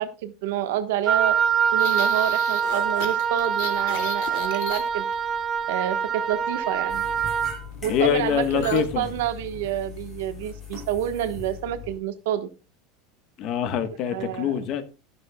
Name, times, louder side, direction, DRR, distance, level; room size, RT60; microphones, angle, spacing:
voice 1, 0.0-1.4 1.7-5.1 5.7-7.0 7.8-12.5 14.1-14.5, right 11 dB, 70° right, 1.3 m, -28 dB
Wind instrument woodwind instrument, 1.1-7.6, right 7 dB, 20° right, 0.7 m, -24 dB
sound 1, 1.8-5.2 8.6-8.9 9.2-9.4 9.8-10.2, left 10 dB, 60° left, 2.3 m, -36 dB
sound 2, 6.9-12.0, left 6 dB, 10° left, 6.1 m, -40 dB
voice 2, 7.9-9.0 13.4-14.8, left 9 dB, 35° left, 1.3 m, -24 dB
12.5 x 11.0 x 2.3 m
supercardioid pair, 180°, 0 cm